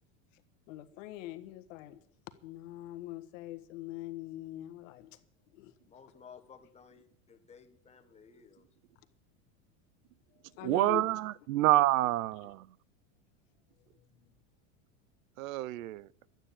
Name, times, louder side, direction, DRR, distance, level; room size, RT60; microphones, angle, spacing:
voice 1, 0.7-2.0 2.3-5.2 5.5-5.8 6.1-6.5 10.3-11.4 12.0-12.3 13.8-14.3, left 15 dB, 70° left, 1.5 m, -44 dB
voice 2, 5.9-8.7, left 6 dB, 15° left, 1.4 m, -56 dB
voice 3, 10.6-12.7 15.4-16.1, right 16 dB, 80° right, 0.6 m, -28 dB
12.0 x 9.2 x 8.6 m
supercardioid pair, 130°, 40 cm